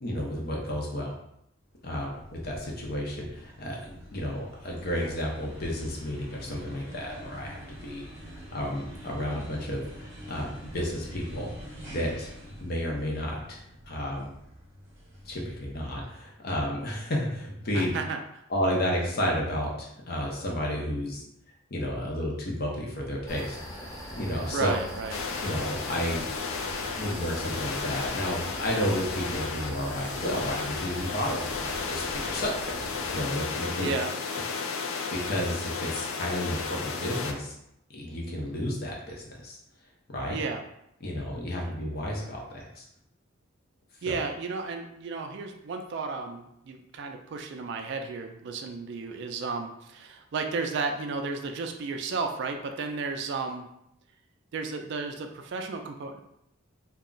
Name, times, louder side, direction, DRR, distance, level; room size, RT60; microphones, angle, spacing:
voice 1, 0.0-1.1 1.8-8.1 8.5-11.5 11.9-12.3 12.6-13.6 13.9-14.3 15.2-17.9 18.5-21.2 21.7-23.6 24.2-24.7 25.4-26.2 27.0-33.9 35.2-37.5 37.9-39.6 40.1-40.4 41.0-42.9 44.1-44.2, equal, 50° left, -2 dB, 0.6 m, -32 dB
sound 1, 1.7-16.2, equal, 15° right, 0.9 m, -46 dB
voice 2, 17.7-18.2 24.5-25.2 33.8-34.1 40.3-40.6 44.0-53.7 54.5-56.2, right 4 dB, 55° right, 4 dB, 0.3 m, -33 dB
sound 2, 23.3-33.2, equal, 15° left, 0.8 m, -40 dB
sound 3, 25.1-37.3, left 5 dB, 85° left, 0.4 m, -34 dB
2.3 x 2.1 x 3.7 m, 0.79 s
head